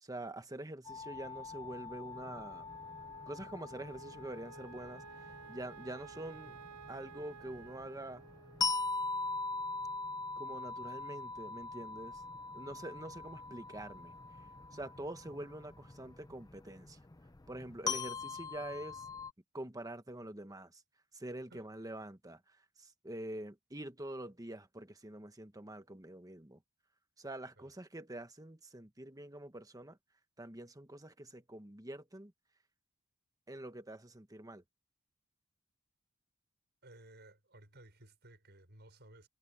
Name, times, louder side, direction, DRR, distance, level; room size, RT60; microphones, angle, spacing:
voice 1, 0.0-2.7 3.3-6.6 6.9-8.3 10.4-12.2 12.5-14.1 14.7-17.0 17.5-19.1 19.5-20.8 21.1-22.4 22.8-26.6 27.2-30.0 30.4-32.3 33.5-34.6, right 1 dB, 15° right, 1.3 m, -46 dB
sound 1, 0.8-19.3, left 3 dB, 15° left, 0.6 m, -42 dB
Wind instrument woodwind instrument, 2.1-10.5, right 5 dB, 90° right, 0.9 m, -55 dB
voice 2, 36.8-39.3, right 1 dB, 50° right, 6.2 m, -57 dB
head